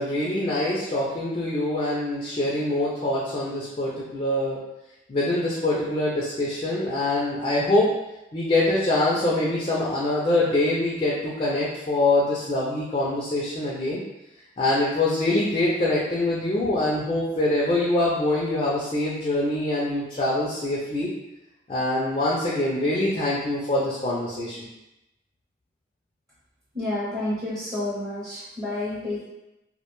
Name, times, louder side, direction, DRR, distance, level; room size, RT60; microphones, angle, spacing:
voice 1, 0.0-4.6 5.1-7.9 8.3-14.0 14.6-21.1 21.7-24.6, left 2 dB, 35° left, -5 dB, 0.4 m, -24 dB
voice 2, 26.7-29.3, left 1 dB, 20° right, -10 dB, 0.6 m, -30 dB
2.4 x 2.1 x 2.9 m, 0.94 s
head